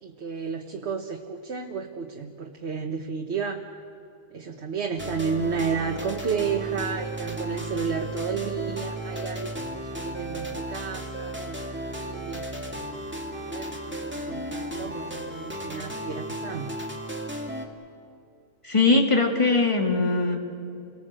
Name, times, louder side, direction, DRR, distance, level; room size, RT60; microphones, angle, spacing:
voice 1, 0.0-3.6 4.3-12.6 13.3-16.7, right 5 dB, 80° right, 3 dB, 1.5 m, -32 dB
sound 1, 5.0-17.7, right 1 dB, 10° right, 2.2 m, -34 dB
voice 2, 18.6-20.4, left 3 dB, 30° left, 2 dB, 2.5 m, -21 dB
29.5 x 19.5 x 7.6 m, 2.7 s
omnidirectional pair, 1.1 m